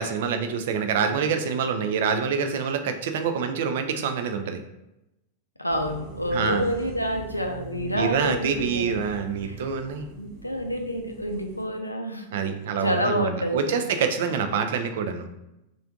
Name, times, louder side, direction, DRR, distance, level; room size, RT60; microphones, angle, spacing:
voice 1, 0.0-4.6 6.3-6.7 7.9-10.2 12.3-15.3, right 6 dB, 55° right, 7 dB, 0.4 m, -26 dB
voice 2, 5.6-9.1 9.4-9.6 10.2-12.3 12.8-13.8, equal, 85° left, 4 dB, 0.4 m, -28 dB
sound 1, 5.7-11.7, right 4 dB, 40° right, 0.8 m, -43 dB
3.3 x 2.5 x 3.6 m, 0.90 s
figure-of-eight pair, 90°, 0 cm